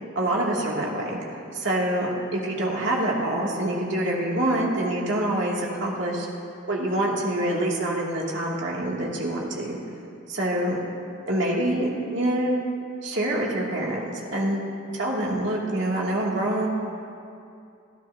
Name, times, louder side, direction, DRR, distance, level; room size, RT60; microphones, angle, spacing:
voice 1, 0.2-1.2 1.5-6.3 6.7-9.8 10.3-10.8 11.3-12.6 13.0-14.0 14.3-14.6 14.9-16.7, right 1 dB, 60° right, -3 dB, 2.4 m, -26 dB
24.0 x 13.5 x 2.7 m, 2.5 s
head